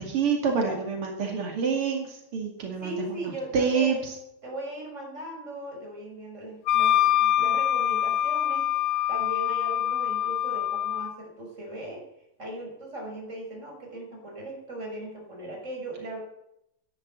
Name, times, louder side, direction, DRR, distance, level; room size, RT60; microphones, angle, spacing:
voice 1, 0.0-2.0 2.3-3.2 3.5-3.9, right 6 dB, 85° right, 2 dB, 3.3 m, -26 dB
voice 2, 2.8-4.1 4.4-12.0 12.4-16.2, right 1 dB, 30° right, -1 dB, 6.4 m, -38 dB
Wind instrument woodwind instrument, 6.7-11.2, left 12 dB, 80° left, 1.7 m, -25 dB
12.5 x 11.5 x 9.3 m, 0.80 s
omnidirectional pair, 2.4 m